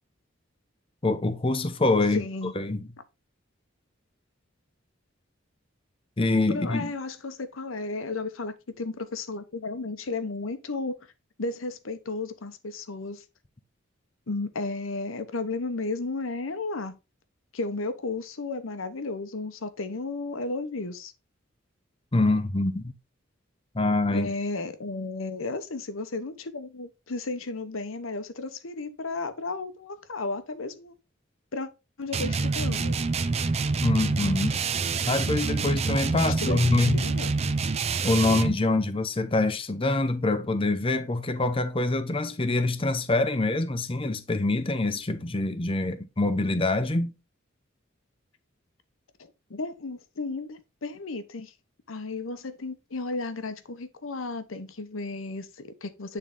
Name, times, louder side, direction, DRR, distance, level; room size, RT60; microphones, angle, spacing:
voice 1, 1.0-2.8 6.2-6.9 22.1-22.9 23.7-24.3 33.8-34.6 35.1-37.1 38.0-47.1, left 2 dB, 25° left, 0.7 m, -25 dB
voice 2, 2.1-2.5 6.5-11.0 11.4-13.2 14.3-17.0 17.5-21.1 24.1-30.9 31.5-31.7 32.0-32.9 35.6-35.7 36.2-37.3 49.2-51.5 51.9-56.2, left 3 dB, 90° left, 0.9 m, -34 dB
sound 1, 32.1-38.6, right 4 dB, 30° right, 0.4 m, -27 dB
9.1 x 3.8 x 3.6 m
head